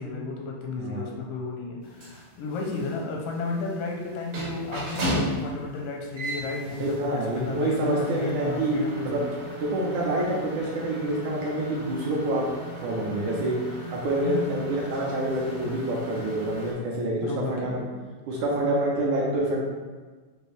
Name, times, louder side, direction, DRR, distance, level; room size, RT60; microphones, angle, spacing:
voice 1, 0.0-9.3 14.3-14.4 17.2-17.8, left 3 dB, 85° left, 0 dB, 2.2 m, -33 dB
sound 1, 1.8-16.7, right 1 dB, 60° right, 1.3 m, -37 dB
voice 2, 6.8-8.8 9.1-9.2 9.6-12.5 12.8-13.6 13.9-17.8 18.3-19.6, right 1 dB, 75° right, -3 dB, 1.9 m, -27 dB
6.1 x 2.7 x 3.1 m, 1.4 s
omnidirectional pair, 3.8 m